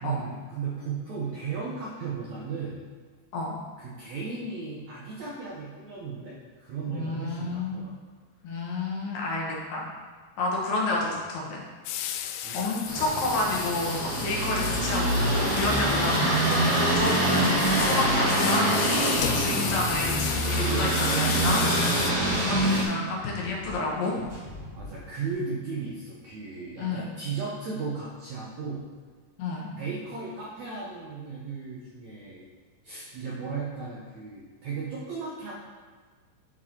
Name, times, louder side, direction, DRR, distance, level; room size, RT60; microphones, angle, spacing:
voice 1, 0.0-2.8 3.8-8.0 12.4-12.7 21.9-22.6 24.8-28.9 29.8-32.4 32.8-35.5, right 4 dB, 75° right, -4 dB, 1.7 m, -35 dB
voice 2, 6.9-7.8 8.4-9.9 10.4-11.6 12.5-16.5 17.0-22.0 22.4-24.1 26.8-27.1 29.4-29.7, left 2 dB, 70° left, -3 dB, 2.9 m, -30 dB
sound 1, 11.9-22.1, left 10 dB, 90° left, 2.6 m, -34 dB
sound 2, 12.9-22.8, right 1 dB, 60° right, 1.0 m, -25 dB
sound 3, 16.8-25.3, left 1 dB, 25° right, 1.8 m, -43 dB
10.5 x 4.7 x 4.4 m, 1.5 s
omnidirectional pair, 4.5 m